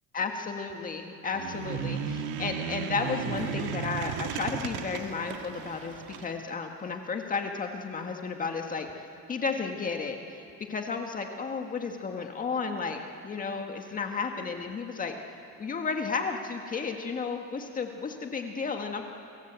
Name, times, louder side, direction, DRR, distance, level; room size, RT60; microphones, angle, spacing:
voice 1, 0.1-8.9 9.3-15.1 15.6-19.0, left 5 dB, 25° left, 4 dB, 1.7 m, -33 dB
sound 1, 1.3-6.3, right 8 dB, 65° right, 1.8 m, -35 dB
29.5 x 23.0 x 8.2 m, 2.6 s
cardioid pair, 150°, 33 cm